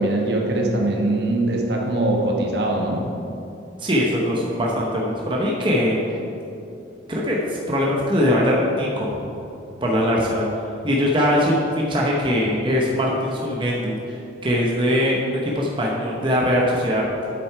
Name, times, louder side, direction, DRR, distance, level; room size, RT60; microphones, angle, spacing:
voice 1, 0.0-3.0, right 2 dB, 60° right, 0 dB, 1.1 m, -22 dB
voice 2, 3.8-6.0 7.1-9.2 9.8-10.5 10.8-14.2 14.4-17.0, equal, 25° right, -3 dB, 0.8 m, -21 dB
8.3 x 6.1 x 4.6 m, 2.7 s
head